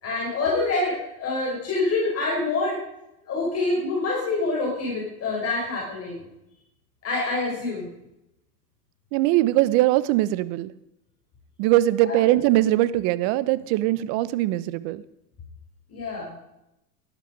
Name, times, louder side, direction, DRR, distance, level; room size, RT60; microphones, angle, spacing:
voice 1, 0.0-2.8 3.2-6.3 7.0-7.9 12.0-12.2 15.9-16.3, left 3 dB, 30° left, -3 dB, 6.0 m, -26 dB
voice 2, 9.1-10.7 11.6-15.0, right 15 dB, 50° right, 16 dB, 1.1 m, -21 dB
18.0 x 12.0 x 5.3 m, 0.85 s
hypercardioid pair, 115°, 46 cm